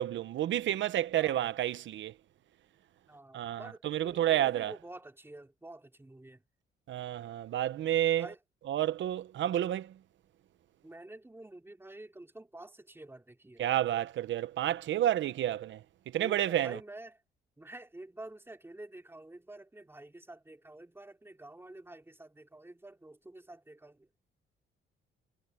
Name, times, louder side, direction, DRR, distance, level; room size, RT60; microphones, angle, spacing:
voice 1, 0.0-2.1 3.3-4.7 6.9-8.3 8.7-9.9 13.6-15.8 16.1-16.8, right 12 dB, 70° right, 1.0 m, -30 dB
voice 2, 1.1-1.5 3.1-6.4 8.2-8.4 10.8-13.6 16.2-17.2 17.6-24.2, right 2 dB, 10° right, 3.3 m, -49 dB
cardioid pair, 90°, 20 cm